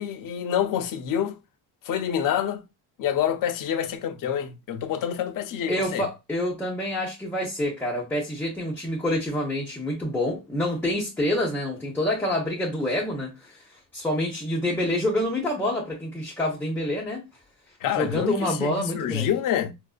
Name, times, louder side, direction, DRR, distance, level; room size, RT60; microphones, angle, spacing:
voice 1, 0.0-1.4 1.8-2.6 3.0-6.1 17.8-19.7, left 9 dB, 55° left, 0.6 m, -27 dB
voice 2, 5.7-17.3 17.9-19.3, left 1 dB, 5° left, 0.6 m, -27 dB
4.7 x 2.4 x 2.3 m
cardioid pair, 165°, 40 cm